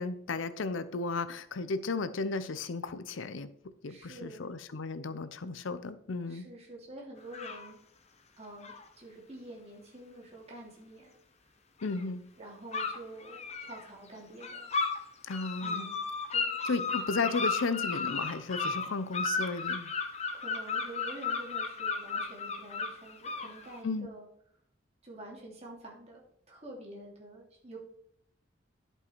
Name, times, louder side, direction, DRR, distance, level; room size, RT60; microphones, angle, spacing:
voice 1, 0.0-3.5 3.8-6.5 11.8-12.2 15.2-15.9 16.6-19.9 23.8-24.1, left 3 dB, 90° left, 13 dB, 0.6 m, -34 dB
voice 2, 3.9-4.5 6.3-7.8 8.4-11.1 12.4-14.7 15.6-16.0 16.3-16.6 20.3-24.3 25.0-27.8, right 1 dB, 35° right, -3 dB, 2.8 m, -48 dB
sound 1, 7.3-7.7 8.6-8.9 11.8-12.0 12.7-13.8 14.4-15.0 15.3-23.8, left 4 dB, 35° left, 0.9 m, -34 dB
11.0 x 5.5 x 4.5 m, 0.69 s
head